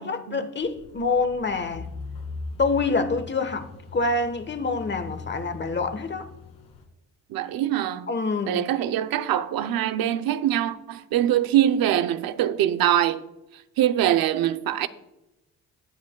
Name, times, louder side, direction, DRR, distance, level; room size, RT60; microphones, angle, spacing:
voice 1, 0.0-1.9 2.6-6.3 8.1-8.6, left 3 dB, 30° left, 1.2 m, -26 dB
sound 1, 0.6-6.8, left 4 dB, 70° left, 2.3 m, -40 dB
voice 2, 7.3-8.1 8.5-13.2 13.8-14.9, right 11 dB, 80° right, 0.7 m, -23 dB
18.0 x 9.5 x 2.3 m
supercardioid pair, 70°, 35 cm